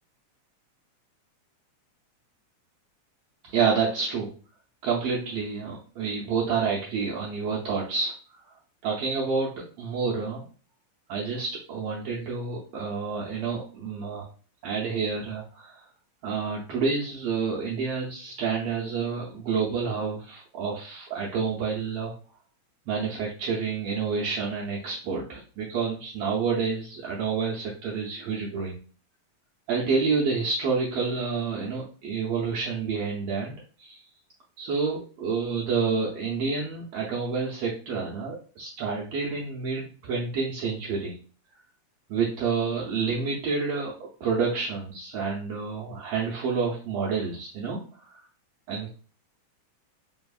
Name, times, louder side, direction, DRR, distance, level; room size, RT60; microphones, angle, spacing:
voice 1, 3.4-4.3 4.8-8.4 8.8-9.5 9.8-10.4 11.1-14.3 14.6-15.9 16.2-22.1 22.9-28.8 29.7-34.0 34.6-41.2 42.1-43.9 44.2-48.2 48.7-48.9, right 5 dB, 80° right, -3 dB, 1.5 m, -29 dB
4.4 x 3.4 x 2.3 m, 0.39 s
omnidirectional pair, 3.5 m